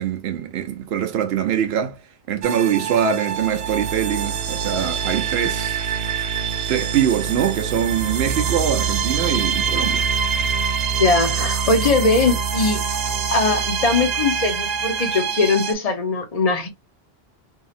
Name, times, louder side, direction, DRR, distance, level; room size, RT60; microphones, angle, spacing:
voice 1, 0.0-2.0 2.3-5.8 6.7-10.1, right 9 dB, 75° right, 0.9 m, -23 dB
sound 1, 2.4-15.7, right 6 dB, 55° right, 0.5 m, -24 dB
voice 2, 11.0-12.8 13.3-16.7, left 3 dB, 40° left, 0.8 m, -20 dB
2.7 x 2.7 x 2.4 m
omnidirectional pair, 1.1 m